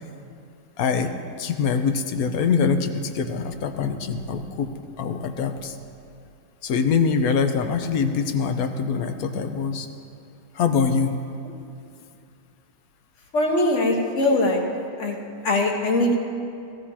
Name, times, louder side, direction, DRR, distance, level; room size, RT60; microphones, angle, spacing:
voice 1, 0.8-1.1 1.4-4.7 5.0-5.8 6.6-9.9 10.5-11.1, left 5 dB, 70° left, 7 dB, 1.2 m, -24 dB
voice 2, 13.3-14.6 15.0-15.2 15.4-16.3, left 1 dB, 50° left, 0 dB, 1.6 m, -21 dB
16.5 x 15.0 x 2.8 m, 2.6 s
omnidirectional pair, 1.7 m